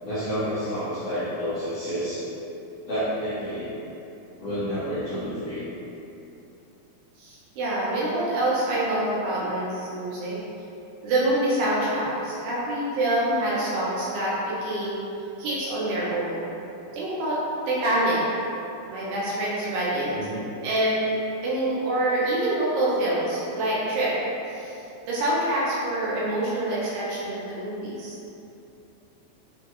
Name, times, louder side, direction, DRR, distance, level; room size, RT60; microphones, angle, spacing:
voice 1, 0.0-2.3 2.9-3.7 4.4-5.6 20.1-20.4, equal, 85° left, -13 dB, 1.3 m, -29 dB
voice 2, 7.2-10.4 11.0-15.1 15.4-16.4 16.9-17.4 17.7-18.2 18.8-20.3 20.6-21.1 21.4-24.1 24.5-24.8 25.1-28.2, right 1 dB, 80° right, -7 dB, 2.6 m, -26 dB
6.1 x 2.3 x 2.9 m, 2.9 s
omnidirectional pair, 4.2 m